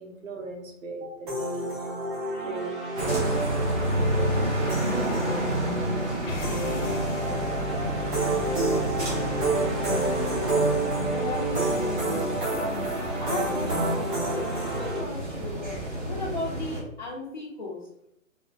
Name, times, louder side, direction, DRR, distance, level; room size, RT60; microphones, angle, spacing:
voice 1, 0.0-1.9 2.4-6.5 7.7-7.8, right 2 dB, 75° right, 1 dB, 1.0 m, -39 dB
sound 1, 1.3-15.0, right 2 dB, 40° right, 1.0 m, -29 dB
sound 2, 3.0-16.8, equal, 60° right, 1.4 m, -31 dB
sound 3, 6.2-12.4, left 1 dB, 75° left, 0.8 m, -35 dB
voice 2, 10.3-10.8 11.1-12.7 13.2-14.4 14.7-17.8, left 2 dB, 35° left, -7 dB, 0.5 m, -36 dB
4.0 x 2.1 x 2.5 m, 0.80 s
hypercardioid pair, 165°, 40 cm